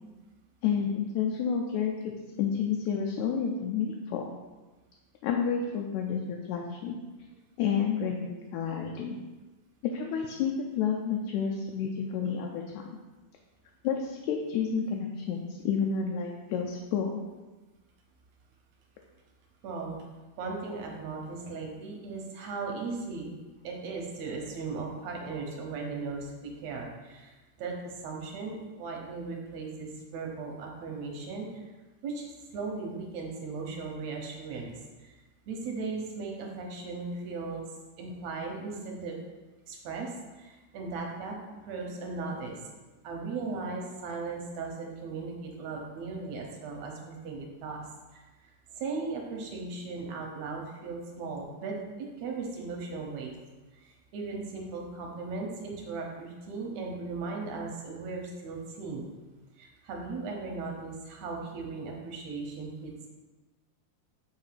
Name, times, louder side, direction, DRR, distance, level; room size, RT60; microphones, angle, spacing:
voice 1, 0.6-2.1 2.4-4.2 5.2-7.0 7.6-9.2 9.8-13.0 13.8-17.2, left 6 dB, 80° left, 1 dB, 1.8 m, -30 dB
voice 2, 19.6-20.0 20.4-23.3 23.6-27.3 27.6-31.5 32.0-34.7 35.0-35.1 35.5-37.6 38.0-39.2 39.7-40.1 40.4-41.4 41.7-42.6 43.0-47.8 48.1-48.2 48.8-53.3 53.8-59.1 59.6-63.1, right 4 dB, 70° right, 0 dB, 1.9 m, -37 dB
7.4 x 2.7 x 5.7 m, 1.2 s
omnidirectional pair, 3.7 m